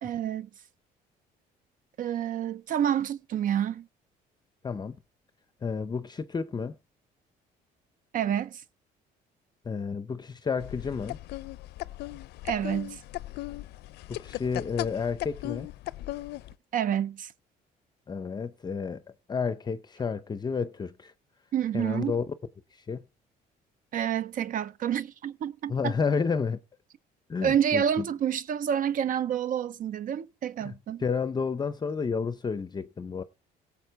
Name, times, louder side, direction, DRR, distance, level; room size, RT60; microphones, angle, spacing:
voice 1, 0.0-0.5 2.0-3.9 8.1-8.6 12.4-13.0 16.7-17.3 21.5-22.2 23.9-25.9 27.4-31.0, right 9 dB, 55° right, 0.6 m, -28 dB
voice 2, 4.6-5.0 5.6-6.8 9.6-11.2 14.1-15.7 18.1-19.0 19.3-21.1 21.7-22.3 22.7-23.0 25.7-26.6 27.3-28.0 30.6-30.7 31.0-33.2, left 5 dB, 25° left, 0.6 m, -31 dB
sound 1, 10.6-16.5, left 17 dB, 75° left, 0.5 m, -38 dB
17.5 x 7.3 x 4.6 m
cardioid pair, 110°, 17 cm